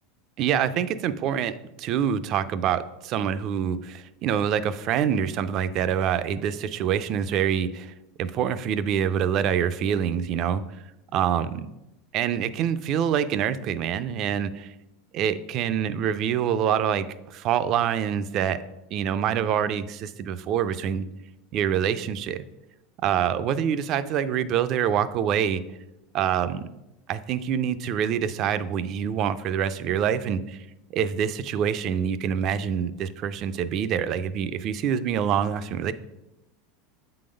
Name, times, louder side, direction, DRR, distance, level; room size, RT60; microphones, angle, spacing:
voice 1, 0.4-10.6 11.1-11.7 12.1-14.7 15.1-18.6 18.9-21.1 21.5-22.4 23.0-25.6 26.1-26.7 27.1-30.6 30.9-35.9, right 8 dB, 40° right, 13 dB, 0.4 m, -26 dB
7.3 x 3.9 x 5.1 m, 0.92 s
supercardioid pair, 145°, 0 cm